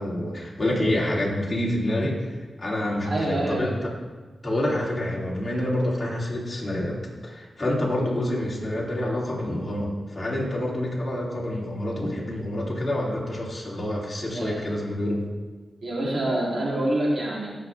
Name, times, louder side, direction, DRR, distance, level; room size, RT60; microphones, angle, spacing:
voice 1, 0.0-3.9 4.4-6.9 7.2-15.2, left 1 dB, 25° left, -5 dB, 3.6 m, -27 dB
voice 2, 3.0-3.7 7.9-8.1 14.2-14.6 15.8-17.5, right 1 dB, 60° right, -5 dB, 3.9 m, -26 dB
18.0 x 6.7 x 3.8 m, 1.3 s
cardioid pair, 65°, 0 cm